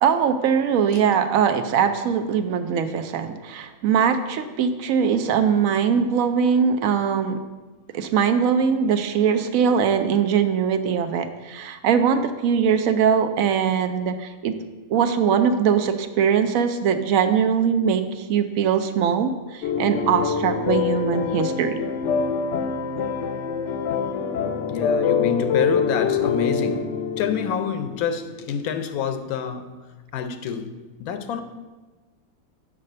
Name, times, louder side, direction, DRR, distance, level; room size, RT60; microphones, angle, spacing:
voice 1, 0.0-7.4 7.9-14.5 14.9-21.7, right 7 dB, 75° right, 9 dB, 1.0 m, -21 dB
sound 1, 19.6-28.3, left 6 dB, 65° left, 0.8 m, -25 dB
voice 2, 24.7-26.9 27.2-29.8 30.1-30.7 31.0-31.4, left 7 dB, 90° left, 8 dB, 1.1 m, -27 dB
5.4 x 4.9 x 6.5 m, 1.2 s
omnidirectional pair, 1.5 m